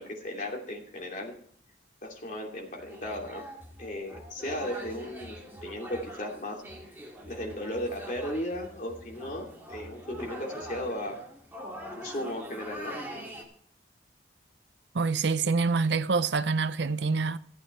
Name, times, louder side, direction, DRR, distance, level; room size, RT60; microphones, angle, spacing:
voice 1, 0.0-1.3 2.0-3.4 3.8-6.6 7.3-11.2 11.9-13.0, left 1 dB, 45° left, 2.8 m, -36 dB
sound 1, 2.8-13.4, equal, 10° right, 2.4 m, -43 dB
voice 2, 14.9-17.4, right 4 dB, 75° right, 0.6 m, -26 dB
15.0 x 8.5 x 4.4 m
head